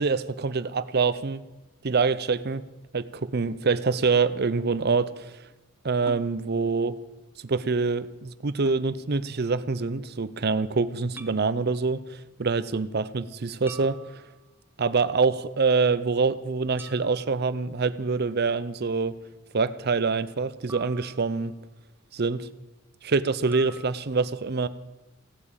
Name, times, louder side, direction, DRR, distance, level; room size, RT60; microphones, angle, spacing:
voice 1, 0.0-1.4 1.8-2.6 2.9-5.4 5.8-7.0 7.4-14.0 14.8-19.2 19.5-21.5 22.1-22.5 23.0-24.7, right 4 dB, 55° right, 15 dB, 0.7 m, -25 dB
sound 1, 6.1-6.3 8.7-8.9 11.2-11.4 13.7-14.6 16.8-17.4 20.7-21.6 23.5-23.9, right 2 dB, 10° right, 0.8 m, -44 dB
16.5 x 8.6 x 8.8 m, 1.1 s
head